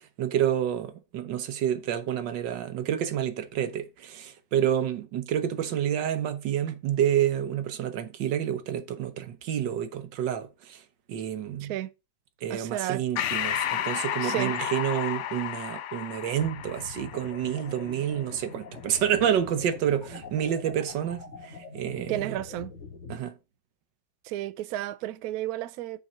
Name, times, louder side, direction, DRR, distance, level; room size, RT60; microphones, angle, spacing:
voice 1, 0.0-10.8 11.1-11.7 12.4-22.1 23.1-23.3, right 10 dB, 85° right, 1.6 m, -29 dB
voice 2, 11.6-11.9 12.5-13.0 14.2-14.5 22.1-22.7 24.2-26.0, right 14 dB, 70° right, 0.9 m, -32 dB
Breathing, 13.2-18.0, left 11 dB, 75° left, 0.6 m, -32 dB
sound 1, 16.4-23.2, left 4 dB, 40° left, 1.8 m, -44 dB
6.3 x 4.3 x 6.6 m
omnidirectional pair, 1.9 m